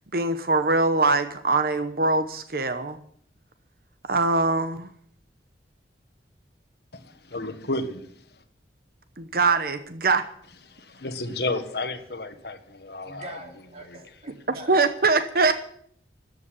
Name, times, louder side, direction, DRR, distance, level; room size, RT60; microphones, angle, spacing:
voice 1, 0.1-3.0 4.1-4.9 9.2-10.3 14.7-15.5, right 3 dB, 55° right, 10 dB, 0.9 m, -22 dB
voice 2, 6.9-8.4 10.7-13.4 13.8-14.0, left 2 dB, 65° left, 8 dB, 1.6 m, -32 dB
voice 3, 13.0-14.7 15.3-15.5, right 1 dB, 35° right, 2 dB, 3.2 m, -42 dB
14.0 x 8.2 x 9.9 m, 0.64 s
head